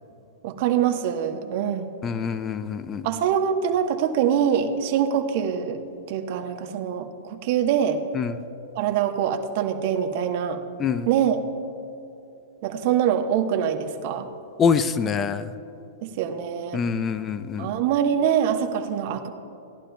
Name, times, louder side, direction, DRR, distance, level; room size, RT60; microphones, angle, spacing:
voice 1, 0.4-1.9 3.0-5.8 6.1-8.0 8.7-10.6 11.1-11.4 12.6-14.3 16.0-16.8 17.6-19.3, right 8 dB, 55° right, 5 dB, 1.1 m, -24 dB
voice 2, 2.0-3.1 8.1-8.4 10.8-11.1 14.6-15.5 16.7-17.7, left 6 dB, 25° left, 12 dB, 0.6 m, -25 dB
17.5 x 11.5 x 2.3 m, 2.8 s
hypercardioid pair, 115°, 0 cm